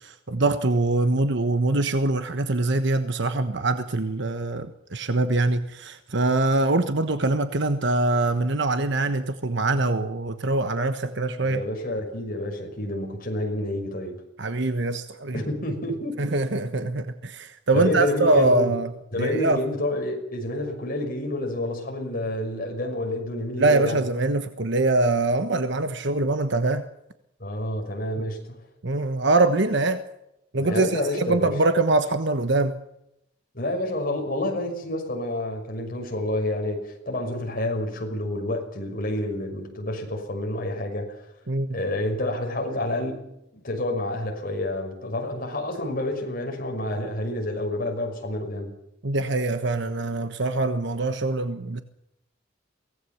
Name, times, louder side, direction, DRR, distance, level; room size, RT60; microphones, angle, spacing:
voice 1, 0.0-11.6 14.4-15.4 16.2-18.9 19.2-19.6 23.6-26.9 28.8-30.0 30.5-32.8 41.5-41.8 49.0-51.8, right 2 dB, 65° right, 1.3 m, -23 dB
voice 2, 11.4-14.2 15.3-16.3 17.7-18.7 19.1-24.0 27.4-28.6 30.6-31.5 33.5-41.3 41.7-43.2 43.5-48.7, left 1 dB, 45° left, 6.0 m, -29 dB
23.5 x 18.0 x 7.2 m
head